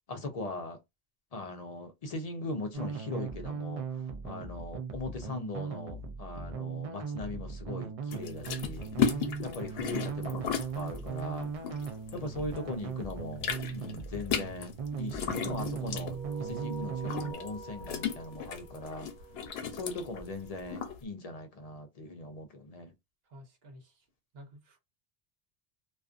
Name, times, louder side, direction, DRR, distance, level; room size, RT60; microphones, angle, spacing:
voice 1, 0.1-0.8 1.3-8.9 9.4-11.5 12.1-19.1 19.7-22.9, left 2 dB, 50° left, 0.5 m, -40 dB
sound 1, 2.7-17.3, right 6 dB, 50° right, 0.4 m, -38 dB
sound 2, 8.1-12.6 12.9-21.0, left 7 dB, 90° left, 0.8 m, -35 dB
voice 2, 9.1-9.4 23.3-24.0 24.3-24.8, equal, 75° right, 1.1 m, -48 dB
sound 3, 16.1-20.9, right 3 dB, 5° right, 1.1 m, -47 dB
2.4 x 2.4 x 2.4 m
omnidirectional pair, 1.0 m